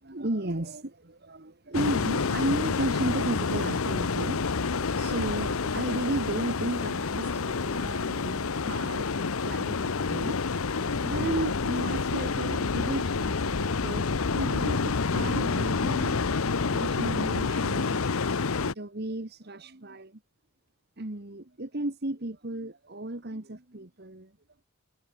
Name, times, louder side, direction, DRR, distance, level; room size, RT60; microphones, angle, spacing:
voice 1, 0.0-16.2 16.5-18.1 18.6-20.2 21.0-24.3, right 1 dB, 50° right, 1.7 m, -34 dB
sound 1, 1.7-18.7, left 4 dB, 80° left, 0.8 m, -28 dB
head